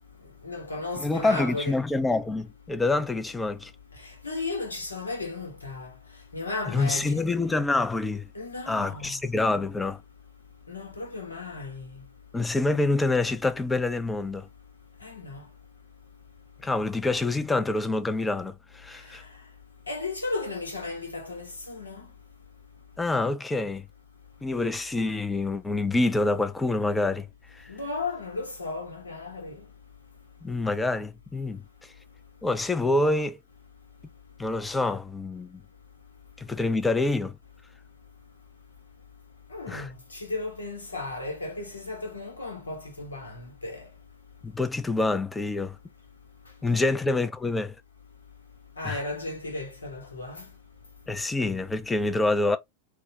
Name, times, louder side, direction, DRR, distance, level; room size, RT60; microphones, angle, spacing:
voice 1, 0.4-1.7 4.0-5.9 6.3-7.2 8.3-9.2 10.7-12.0 15.0-15.4 19.9-22.1 27.7-29.6 39.5-43.9 46.7-46.9 48.8-50.5, left 3 dB, 80° left, 1.0 m, -35 dB
voice 2, 1.0-3.7 6.7-8.3 8.7-10.0 12.3-14.5 16.6-19.2 23.0-23.9 24.4-27.3 27.5-27.7 30.4-31.9 32.4-33.4 34.4-35.6 36.4-37.4 39.7-39.9 44.4-45.8 46.6-47.7 48.8-49.0 51.1-52.6, left 2 dB, 10° left, 0.4 m, -26 dB
3.4 x 2.1 x 2.8 m
figure-of-eight pair, 90°, 0 cm